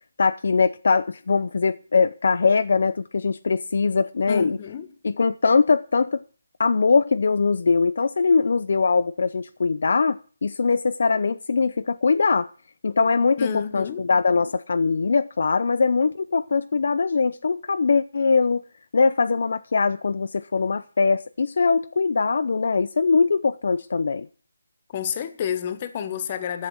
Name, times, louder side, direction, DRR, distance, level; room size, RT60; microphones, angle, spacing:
voice 1, 0.2-4.6 5.0-6.2 6.6-12.5 12.8-18.6 18.9-24.3, left 4 dB, 60° left, 0.6 m, -21 dB
voice 2, 4.3-4.9 13.4-14.0 24.9-26.7, left 8 dB, 30° left, 1.4 m, -29 dB
11.0 x 7.7 x 8.7 m
figure-of-eight pair, 160°, 0 cm